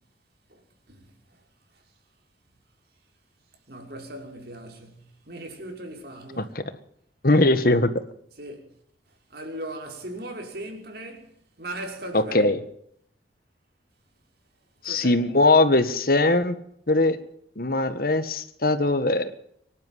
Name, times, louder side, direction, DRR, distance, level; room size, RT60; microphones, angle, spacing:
voice 1, 0.9-1.4 1.7-1.8 3.7-6.5 8.4-8.7 9.3-12.5 14.8-15.2, right 1 dB, 60° right, 5.7 m, -38 dB
voice 2, 7.2-7.9 12.1-12.6 14.8-16.6 16.9-17.2 17.6-19.3, left 2 dB, 55° left, 1.7 m, -20 dB
24.5 x 12.0 x 9.4 m
head